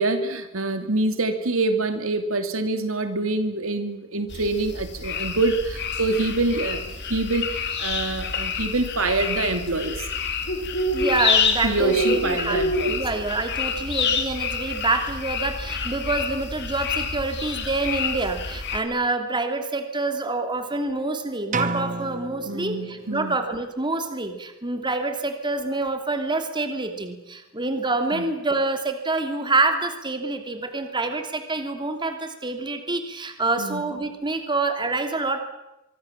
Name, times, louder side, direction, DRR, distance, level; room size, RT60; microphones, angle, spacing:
voice 1, 0.0-10.1 11.6-13.0 22.5-23.4 28.1-28.2 33.6-33.8, right 2 dB, 80° right, 8 dB, 2.8 m, -26 dB
sound 1, 4.3-18.8, left 4 dB, 55° left, 3.1 m, -27 dB
voice 2, 10.9-12.6 12.9-35.4, right 3 dB, 25° right, 6 dB, 2.8 m, -26 dB
sound 2, 21.5-23.4, right 3 dB, 40° right, 1.5 m, -30 dB
24.5 x 24.0 x 7.4 m, 0.93 s
head